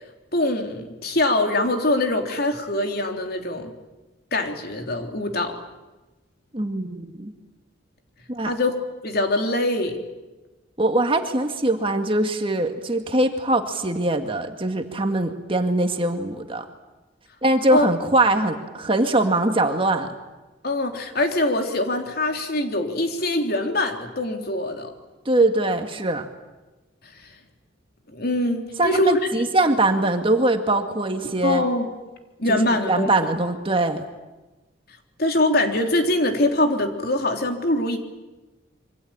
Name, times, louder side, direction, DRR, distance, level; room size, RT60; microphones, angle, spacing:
voice 1, 0.3-3.7 4.3-5.6 8.4-8.7 9.0-10.0 17.7-17.9 20.6-24.9 27.0-27.3 28.1-29.5 31.4-31.8 32.4-33.1 35.2-38.0, left 1 dB, 50° left, 4 dB, 3.5 m, -23 dB
voice 2, 6.5-7.3 8.3-8.5 10.8-16.7 17.4-20.1 25.3-26.3 28.8-31.6 32.5-34.0, right 2 dB, 30° right, 5 dB, 2.1 m, -22 dB
27.0 x 24.5 x 8.9 m, 1.1 s
head